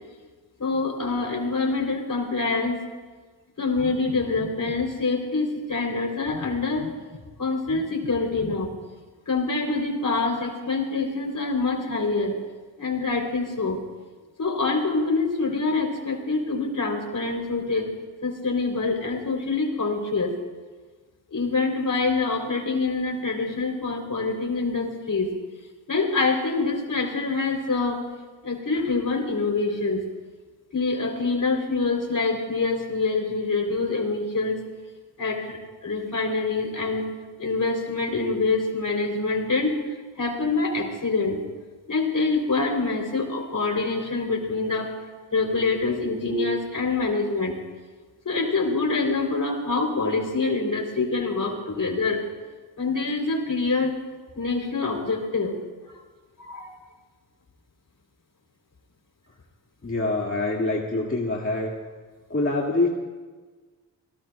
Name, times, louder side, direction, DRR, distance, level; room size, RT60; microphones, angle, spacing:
voice 1, 0.6-2.8 3.6-7.0 7.4-8.7 9.3-12.4 12.8-13.8 14.4-17.9 18.2-20.3 21.3-25.3 25.9-28.0 28.4-30.0 30.7-34.6 35.2-37.1 37.4-39.7 40.2-41.4 41.9-45.0 45.3-47.6 48.2-52.2 52.8-54.0 54.3-55.5 56.4-56.7, left 3 dB, 45° left, 3 dB, 3.4 m, -25 dB
voice 2, 59.8-61.7 62.3-62.9, left 2 dB, 30° left, -3 dB, 2.1 m, -25 dB
24.5 x 18.5 x 2.3 m, 1.4 s
supercardioid pair, 45°, 44 cm